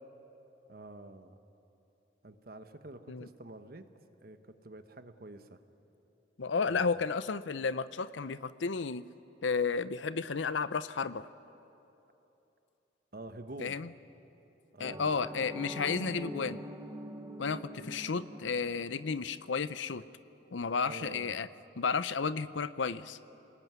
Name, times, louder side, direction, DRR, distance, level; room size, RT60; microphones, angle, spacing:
voice 1, 0.7-1.4 2.2-3.9 4.2-5.6 6.7-6.9 13.1-13.8 14.7-15.1 20.8-21.4, right 2 dB, 50° right, 9 dB, 1.2 m, -47 dB
voice 2, 6.4-9.0 9.4-11.3 13.6-13.9 14.8-16.6 17.4-20.0 20.5-21.5 21.8-23.2, left 5 dB, 85° left, 15 dB, 0.6 m, -32 dB
sound 1, 14.8-19.6, equal, 15° right, 1.1 m, -44 dB
28.5 x 19.5 x 9.5 m, 3.0 s
head